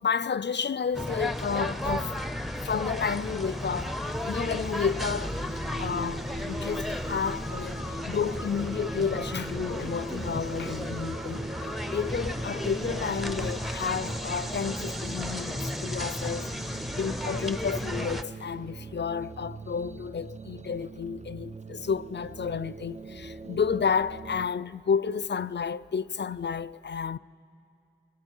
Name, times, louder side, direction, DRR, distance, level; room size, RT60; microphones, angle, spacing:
voice 1, 0.0-2.2 2.6-5.4 5.8-27.2, left 6 dB, 60° left, 0.4 m, -31 dB
sound 1, 0.9-18.2, left 1 dB, ahead, 0.7 m, -34 dB
sound 2, 4.7-24.5, right 3 dB, 35° right, 0.4 m, -42 dB
28.0 x 23.0 x 4.6 m
wide cardioid pair, 40°, 20 cm